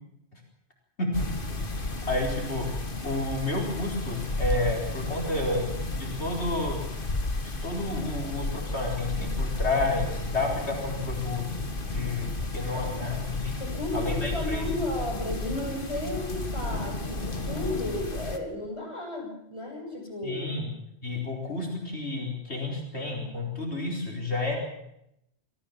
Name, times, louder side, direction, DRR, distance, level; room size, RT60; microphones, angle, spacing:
sound 1, 1.1-18.4, left 2 dB, 50° left, 2.2 m, -33 dB
voice 1, 2.1-2.7 3.0-5.6 6.0-7.0 7.4-13.6 13.9-14.7 20.2-20.7 21.0-24.6, left 2 dB, 75° left, 0 dB, 4.7 m, -31 dB
voice 2, 13.6-20.4, left 1 dB, 25° left, 0 dB, 6.8 m, -33 dB
26.0 x 16.5 x 7.4 m, 0.80 s
omnidirectional pair, 1.1 m